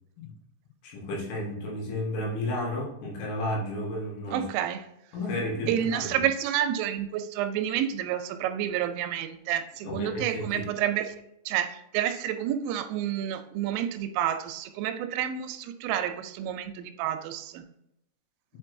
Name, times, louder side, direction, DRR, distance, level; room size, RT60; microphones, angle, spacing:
voice 1, 0.8-4.5 5.1-6.1 9.8-10.6, left 1 dB, 85° left, -3 dB, 4.0 m, -32 dB
voice 2, 4.3-4.8 5.7-17.6, right 10 dB, 90° right, 8 dB, 3.1 m, -29 dB
8.3 x 4.5 x 2.6 m, 0.82 s
omnidirectional pair, 5.6 m